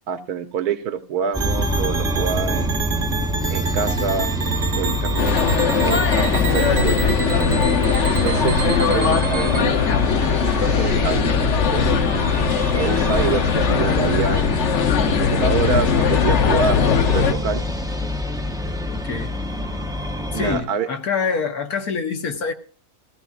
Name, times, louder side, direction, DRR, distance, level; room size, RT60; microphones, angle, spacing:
voice 1, 0.1-2.7 3.5-4.3 4.8-7.6 8.1-11.9 12.4-14.8 15.0-17.6 20.3-20.9, right 6 dB, 80° right, 1.4 m, -27 dB
sound 1, 1.3-20.6, left 1 dB, 5° right, 0.3 m, -26 dB
sound 2, 1.3-9.6, right 4 dB, 50° right, 1.3 m, -28 dB
sound 3, 5.2-17.3, left 6 dB, 55° left, 1.0 m, -20 dB
voice 2, 7.8-8.5 18.9-19.4 20.3-22.5, left 5 dB, 80° left, 1.7 m, -26 dB
16.0 x 15.5 x 2.4 m
omnidirectional pair, 1.6 m